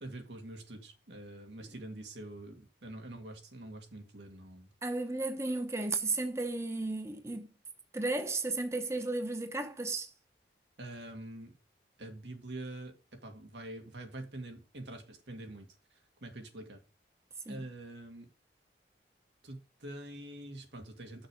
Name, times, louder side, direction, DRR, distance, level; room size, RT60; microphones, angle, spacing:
voice 1, 0.0-4.7 10.8-11.5 12.0-15.7 16.2-16.8 17.5-18.3 19.4-21.3, right 1 dB, 90° right, 2.0 m, -45 dB
voice 2, 4.8-7.5 7.9-10.1 17.5-17.7, right 2 dB, 15° right, 0.8 m, -34 dB
6.5 x 4.8 x 6.7 m
head